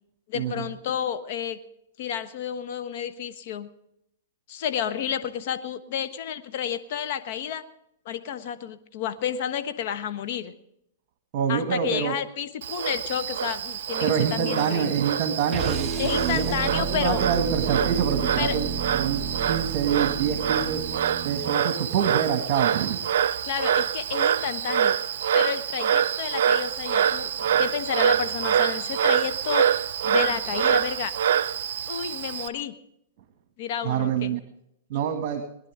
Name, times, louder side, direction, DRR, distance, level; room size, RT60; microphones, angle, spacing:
voice 1, 0.3-1.6 2.0-3.7 4.5-7.6 8.0-10.5 11.5-14.9 16.0-17.2 18.4-18.6 23.4-25.0 25.3-27.3 27.6-29.7 30.0-31.1 31.9-32.7 33.6-34.4, left 9 dB, 55° left, 12 dB, 1.2 m, -30 dB
voice 2, 11.3-12.1 14.0-18.7 18.9-19.2 19.5-20.8 21.2-23.0 33.8-34.4 34.9-35.4, right 8 dB, 45° right, 5 dB, 2.1 m, -26 dB
Frog, 12.6-32.5, right 9 dB, 65° right, 0.7 m, -26 dB
sound 1, 15.5-21.6, right 7 dB, 15° right, 1.1 m, -31 dB
21.5 x 11.0 x 3.7 m, 0.78 s
hypercardioid pair, 130°, 0 cm